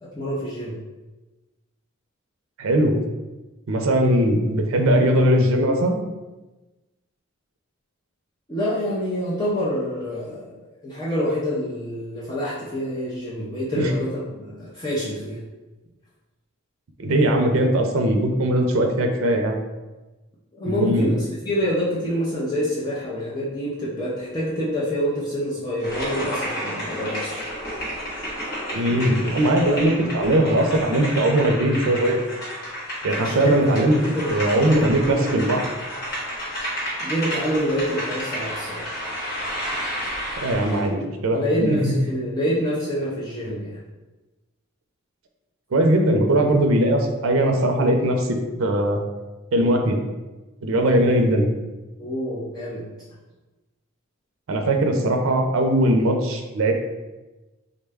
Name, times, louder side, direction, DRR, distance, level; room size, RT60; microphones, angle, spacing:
voice 1, 0.0-0.8 8.5-10.6 10.8-15.4 20.5-27.5 33.2-35.5 37.0-38.9 41.3-43.8 52.0-52.9, equal, 20° left, -8 dB, 0.5 m, -27 dB
voice 2, 2.6-3.0 3.7-6.0 13.8-13.9 17.0-19.6 20.7-21.1 28.7-32.2 33.0-34.0 34.3-35.6 40.4-41.9 45.7-48.3 48.6-49.0 49.5-50.0 50.6-51.5 54.5-56.7, right 1 dB, 75° right, 3 dB, 0.5 m, -20 dB
sound 1, 25.8-40.9, equal, 45° left, 1.0 m, -31 dB
3.7 x 2.2 x 3.4 m, 1.1 s
head